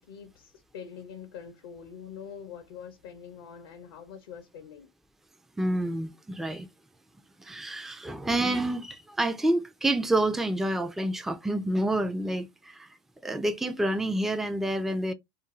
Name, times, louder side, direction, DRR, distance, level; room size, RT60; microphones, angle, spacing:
voice 1, 0.0-4.9, left 7 dB, 70° left, 0.5 m, -44 dB
voice 2, 5.6-6.7 7.4-12.9 13.2-15.1, right 1 dB, 5° right, 0.3 m, -28 dB
2.4 x 2.3 x 2.9 m
hypercardioid pair, 85°, 12 cm